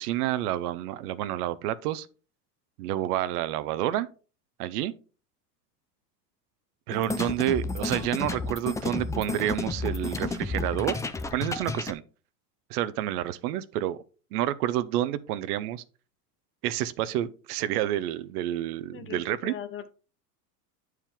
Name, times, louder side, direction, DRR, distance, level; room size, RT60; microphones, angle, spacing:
voice 1, 0.0-2.1 2.8-4.1 4.6-4.9 6.9-11.0 11.3-12.0 12.7-14.0 14.3-15.8 16.6-19.5, right 13 dB, 65° right, 0.8 m, -29 dB
sound 1, 6.9-11.9, left 3 dB, 5° left, 0.4 m, -32 dB
voice 2, 18.9-19.9, left 8 dB, 25° left, 0.9 m, -40 dB
9.7 x 4.7 x 3.6 m
hypercardioid pair, 100°, 49 cm